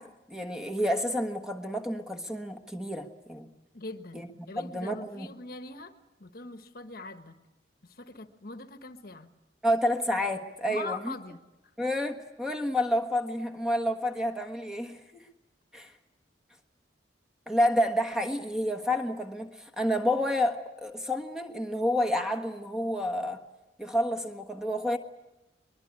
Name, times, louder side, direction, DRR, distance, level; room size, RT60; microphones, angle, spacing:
voice 1, 0.0-3.5 4.1-4.2 4.6-5.3 9.6-11.1 11.8-15.2 15.7-15.9 17.5-23.4 23.8-25.0, left 1 dB, 5° right, 1.4 m, -29 dB
voice 2, 3.7-5.9 6.2-7.4 7.8-9.3 10.7-11.4, left 3 dB, 55° left, 1.2 m, -42 dB
23.0 x 21.5 x 9.8 m
head